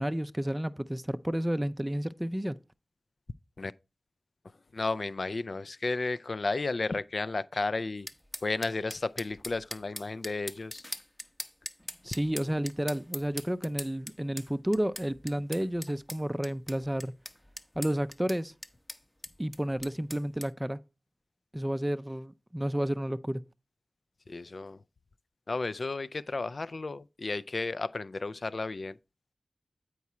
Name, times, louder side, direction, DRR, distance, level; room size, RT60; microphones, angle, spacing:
voice 1, 0.0-2.6 12.0-17.1 17.8-18.5 19.4-20.8 21.5-23.4, equal, 10° right, 0.4 m, -31 dB
voice 2, 4.4-8.1 8.4-10.8 24.3-24.8 25.5-29.0, left 3 dB, 60° left, 0.3 m, -33 dB
sound 1, 8.1-20.5, left 1 dB, 20° left, 0.7 m, -42 dB
8.3 x 4.8 x 4.2 m
cardioid pair, 40°, 0 cm